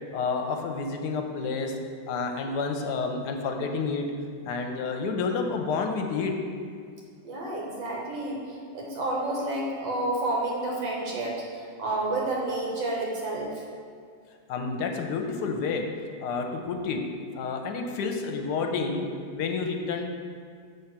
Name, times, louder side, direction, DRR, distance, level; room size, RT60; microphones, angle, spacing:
voice 1, 0.1-1.7 2.1-4.1 4.4-6.3 14.5-15.8 16.2-17.0 17.3-20.1, left 4 dB, 70° left, 4 dB, 1.1 m, -29 dB
voice 2, 7.2-8.4 8.7-13.6, right 2 dB, 75° right, -3 dB, 1.8 m, -30 dB
7.0 x 3.1 x 5.8 m, 2.1 s
omnidirectional pair, 2.0 m